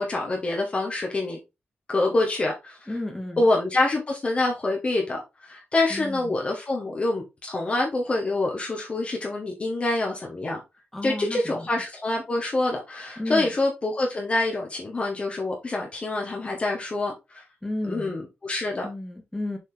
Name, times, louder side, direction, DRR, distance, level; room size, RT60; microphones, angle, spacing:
voice 1, 0.0-1.4 1.9-2.9 3.4-10.6 11.0-17.4 17.9-18.9, left 2 dB, 30° left, 1.4 m, -26 dB
voice 2, 2.9-3.4 5.9-6.4 10.9-11.7 13.2-13.5 17.6-18.1 18.8-19.6, left 1 dB, 10° left, 1.8 m, -32 dB
6.8 x 4.0 x 3.8 m
wide cardioid pair, 150°, 4 cm